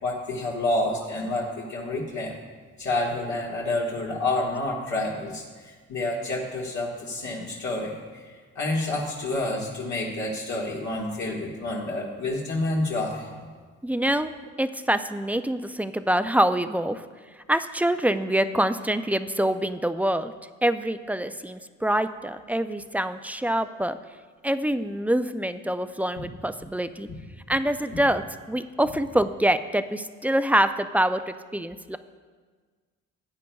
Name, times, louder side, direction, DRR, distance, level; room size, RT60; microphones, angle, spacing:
voice 1, 0.0-2.4 2.8-8.2 8.5-13.3 27.1-27.2 27.9-28.0, left 2 dB, 65° left, -5 dB, 1.6 m, -29 dB
voice 2, 13.8-14.3 14.6-17.0 17.5-20.3 20.6-24.0 24.4-27.1 27.5-32.0, right 1 dB, 5° right, 10 dB, 0.3 m, -25 dB
16.0 x 9.1 x 2.3 m, 1.5 s
cardioid pair, 90°, 30 cm